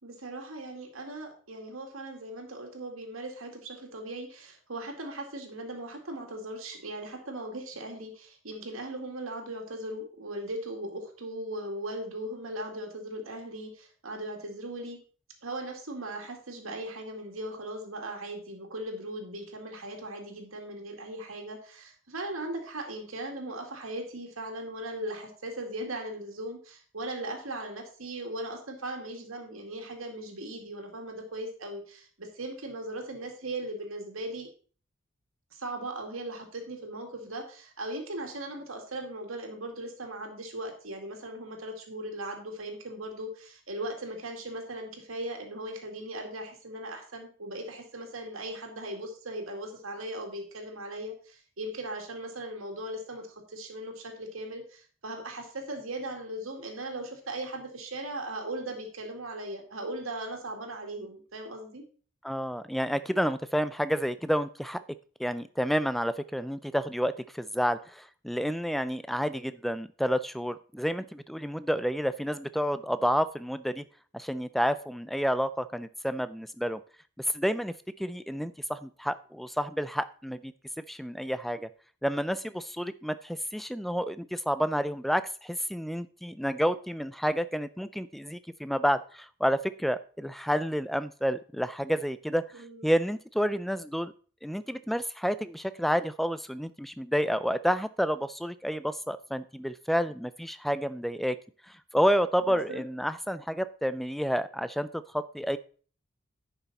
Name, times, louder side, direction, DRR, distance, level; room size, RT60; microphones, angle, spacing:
voice 1, 0.0-15.0 15.4-34.5 35.5-61.8 92.5-92.9 102.4-102.8, right 1 dB, 90° right, 3 dB, 2.2 m, -38 dB
voice 2, 62.2-64.8 65.2-73.8 74.1-76.8 77.2-80.5 80.9-81.7 82.0-92.4 92.8-94.1 94.4-101.4 101.7-105.6, equal, ahead, 14 dB, 0.3 m, -30 dB
10.0 x 5.7 x 4.1 m, 0.41 s
head